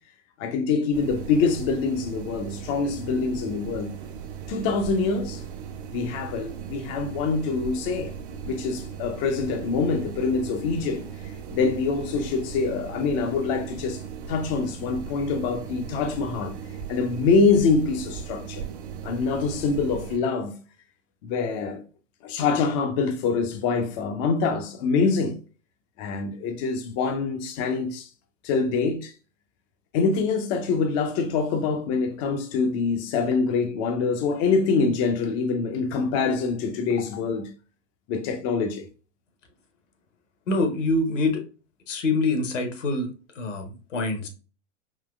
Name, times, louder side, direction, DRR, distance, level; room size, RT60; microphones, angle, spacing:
voice 1, 0.4-3.9 4.5-5.4 5.9-8.1 8.4-14.0 14.3-16.5 16.9-18.7 19.0-20.6 21.2-21.8 22.2-25.4 26.0-28.1 28.4-29.1 29.9-37.5 38.1-38.9, left 4 dB, 25° left, 0.4 m, -25 dB
sound 1, 0.9-20.2, right 7 dB, 45° right, 0.5 m, -38 dB
voice 2, 40.5-41.4 41.9-44.3, left 2 dB, 75° left, 1.0 m, -25 dB
3.7 x 2.8 x 2.2 m
hypercardioid pair, 115°, 37 cm